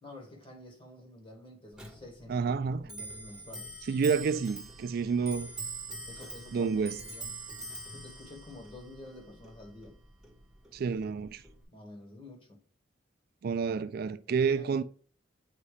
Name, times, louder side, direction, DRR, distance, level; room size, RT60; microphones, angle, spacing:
voice 1, 0.0-3.8 6.1-7.3 7.9-10.0 11.7-12.6 14.3-14.8, left 2 dB, 25° left, 1.5 m, -49 dB
Clock, 1.7-11.6, right 3 dB, 5° right, 1.0 m, -44 dB
voice 2, 2.3-2.8 3.9-5.5 6.5-7.0 10.7-11.4 13.4-14.8, right 5 dB, 50° right, 0.3 m, -29 dB
8.2 x 2.8 x 4.9 m
head